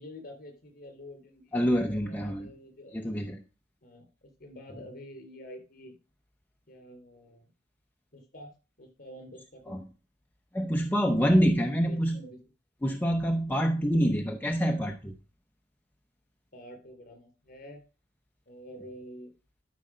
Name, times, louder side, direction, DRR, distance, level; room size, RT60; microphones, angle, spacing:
voice 1, 0.0-1.6 1.9-3.1 3.8-5.9 6.7-7.5 8.1-9.8 11.8-12.4 16.5-17.8 18.5-19.3, equal, 55° left, 4 dB, 4.2 m, -48 dB
voice 2, 1.5-2.5 2.9-3.4 9.7-9.8 10.5-12.2 12.8-15.2, equal, 10° left, 3 dB, 0.7 m, -26 dB
12.5 x 5.5 x 5.0 m, 0.34 s
head